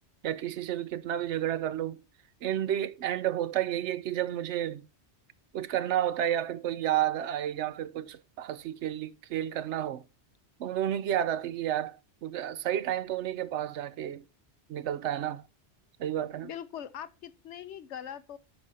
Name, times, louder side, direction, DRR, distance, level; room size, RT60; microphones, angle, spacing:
voice 1, 0.2-2.0 2.4-4.8 5.5-10.0 10.6-14.2 14.7-15.4 16.0-16.5, right 11 dB, 80° right, 0.9 m, -31 dB
voice 2, 16.4-18.4, left 9 dB, 80° left, 1.0 m, -41 dB
8.1 x 5.4 x 5.5 m
omnidirectional pair, 1.2 m